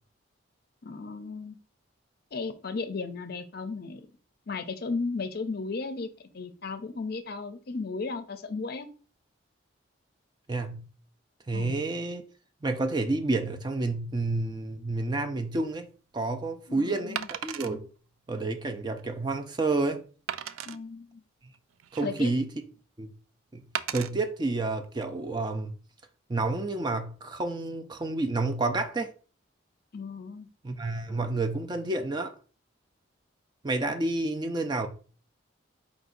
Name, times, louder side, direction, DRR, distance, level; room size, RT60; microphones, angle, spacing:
voice 1, 0.8-1.6 2.3-4.1 4.5-6.1 6.3-8.9 11.5-11.8 16.7-17.3 20.7-21.2 22.0-22.3 29.9-30.5, left 4 dB, 50° left, 0.5 m, -35 dB
voice 2, 10.5-10.8 11.5-12.2 12.6-15.9 16.1-17.9 18.3-20.0 21.9-22.5 23.0-23.1 23.5-23.6 23.9-25.7 26.3-29.1 30.6-32.3 33.6-34.9, right 2 dB, 20° right, 0.4 m, -29 dB
Wood, 15.5-15.7 17.2-17.7 18.4-18.5 19.0-19.1 20.3-20.8 21.5-22.3 23.8-24.1 24.8-25.0, right 10 dB, 90° right, 0.3 m, -35 dB
4.8 x 2.7 x 3.8 m
head